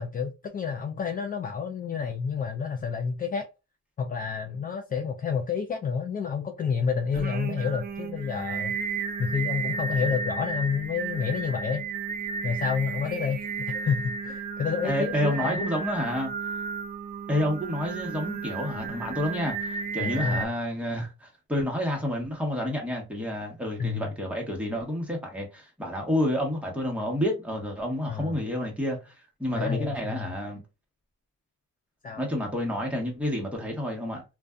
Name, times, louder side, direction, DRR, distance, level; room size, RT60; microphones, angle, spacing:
voice 1, 0.0-3.5 4.0-8.7 9.2-11.8 12.4-13.4 13.6-15.6 20.0-20.5 23.8-24.1 28.1-28.4 29.5-30.3 32.0-32.2, left 6 dB, 30° left, 0.4 m, -29 dB
Singing, 7.1-20.5, right 5 dB, 30° right, 0.5 m, -33 dB
voice 2, 14.8-16.5 17.3-29.1 29.4-30.6 32.2-34.2, left 1 dB, 5° right, 1.1 m, -29 dB
2.5 x 2.3 x 2.3 m
cardioid pair, 90°, 30 cm